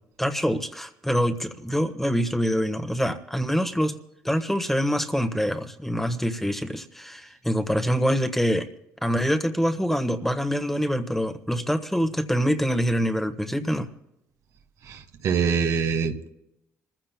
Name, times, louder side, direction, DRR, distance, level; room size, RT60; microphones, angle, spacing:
voice 1, 0.2-4.0 4.2-8.7 9.0-13.9, equal, 5° left, 7 dB, 1.3 m, -25 dB
voice 2, 14.9-16.3, right 6 dB, 65° right, 5 dB, 1.5 m, -25 dB
26.5 x 15.0 x 2.2 m, 0.86 s
supercardioid pair, 75°, 6 cm